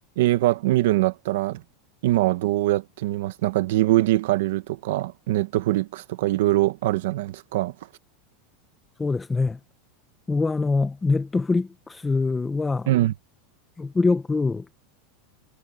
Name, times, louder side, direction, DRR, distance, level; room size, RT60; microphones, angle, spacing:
voice 1, 0.2-1.6 2.0-7.7 12.9-13.1, right 16 dB, 65° right, 1.2 m, -23 dB
voice 2, 9.0-9.6 10.3-12.9 13.8-14.8, left 3 dB, 10° left, 0.6 m, -24 dB
supercardioid pair, 180°, 0 cm